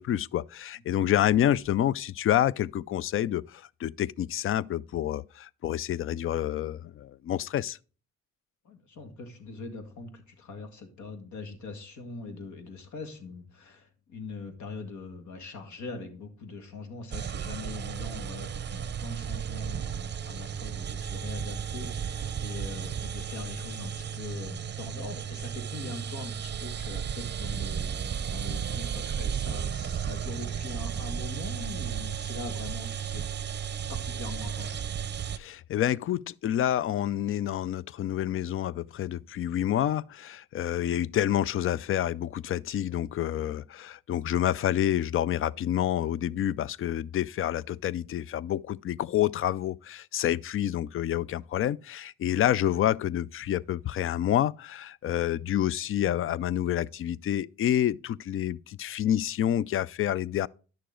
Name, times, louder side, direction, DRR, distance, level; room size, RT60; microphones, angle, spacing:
voice 1, 0.0-7.8 35.4-60.5, left 11 dB, 45° left, 0.4 m, -28 dB
voice 2, 8.6-33.2 33.9-34.8, left 3 dB, 70° left, 2.0 m, -42 dB
sound 1, 17.1-35.4, right 8 dB, 35° right, 0.6 m, -34 dB
10.5 x 6.6 x 3.8 m
cardioid pair, 90°, 30 cm